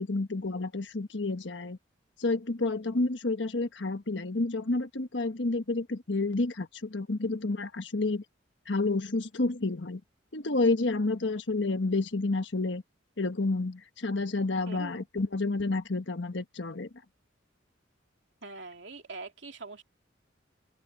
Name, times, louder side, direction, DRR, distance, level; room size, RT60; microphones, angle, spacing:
voice 1, 0.0-1.8 2.2-8.2 8.7-10.0 10.3-12.8 13.2-16.9, left 2 dB, 75° left, 1.3 m, -30 dB
voice 2, 14.7-15.2 18.4-19.8, right 3 dB, 75° right, 2.9 m, -43 dB
open air
head